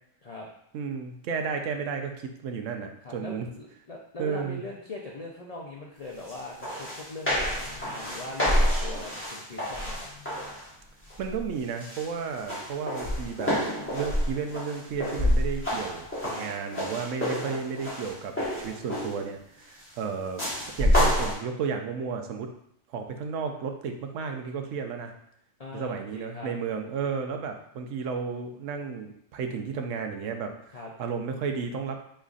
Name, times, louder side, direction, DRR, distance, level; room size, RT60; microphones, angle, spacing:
voice 1, 0.7-3.5 4.2-4.6 11.2-13.5 13.8-22.5 22.9-25.1 25.7-32.0, right 6 dB, 75° right, 4 dB, 0.9 m, -33 dB
voice 2, 3.0-10.1 16.2-16.5 17.4-17.6 25.6-26.5 30.7-30.9, left 2 dB, 60° left, -3 dB, 0.4 m, -41 dB
sound 1, 6.3-6.4 6.6-10.7 11.1-11.5 11.8-19.3 20.4-21.3, equal, 10° left, 1.3 m, -28 dB
5.2 x 3.2 x 2.4 m, 0.73 s
omnidirectional pair, 1.3 m